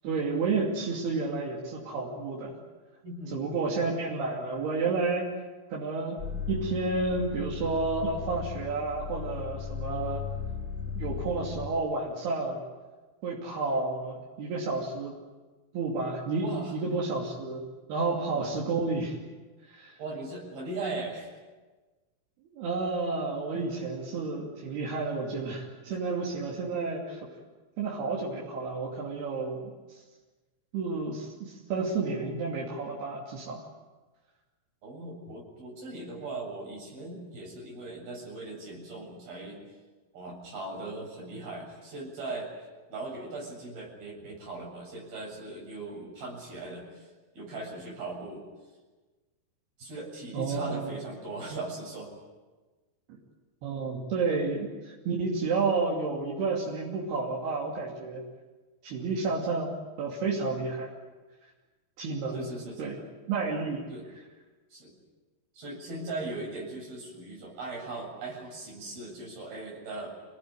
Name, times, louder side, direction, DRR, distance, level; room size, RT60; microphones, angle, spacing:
voice 1, 0.0-2.5 3.3-5.3 5.7-6.2 6.5-10.2 11.0-12.6 13.2-15.1 15.7-19.2 19.7-20.0 22.5-27.2 27.8-29.7 30.7-33.7 50.3-51.0 53.1-53.2 53.6-58.2 58.8-59.7 60.0-60.9 62.0-62.5 62.8-63.0 63.3-63.9, right 3 dB, 90° right, -3 dB, 4.8 m, -31 dB
voice 2, 3.0-3.6 16.4-16.7 18.3-18.5 20.0-21.3 25.9-26.0 34.8-39.6 40.1-42.5 42.9-47.1 47.3-48.4 49.8-52.1 59.0-59.1 62.3-62.9 63.9-64.1 64.7-64.9 65.6-70.1, right 2 dB, 70° right, -1 dB, 9.2 m, -39 dB
sound 1, 6.2-11.7, left 6 dB, 10° right, 4.4 m, -36 dB
28.5 x 18.5 x 9.8 m, 1.3 s
omnidirectional pair, 4.4 m